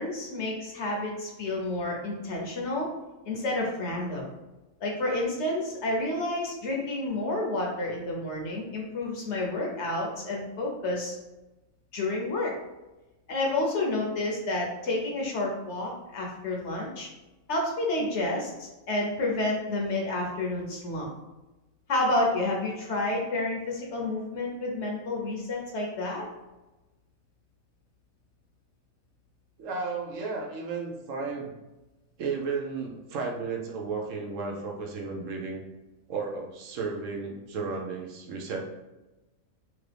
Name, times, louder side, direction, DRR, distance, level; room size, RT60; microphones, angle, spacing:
voice 1, 0.0-2.9 3.3-4.2 4.8-11.1 11.9-12.5 13.3-17.1 17.5-21.1 21.9-26.3, left 2 dB, 60° left, -1 dB, 0.9 m, -30 dB
voice 2, 29.6-31.5 32.2-35.6 36.1-38.6, right 4 dB, 75° right, 1 dB, 0.9 m, -33 dB
3.0 x 2.5 x 3.3 m, 1.0 s
omnidirectional pair, 1.4 m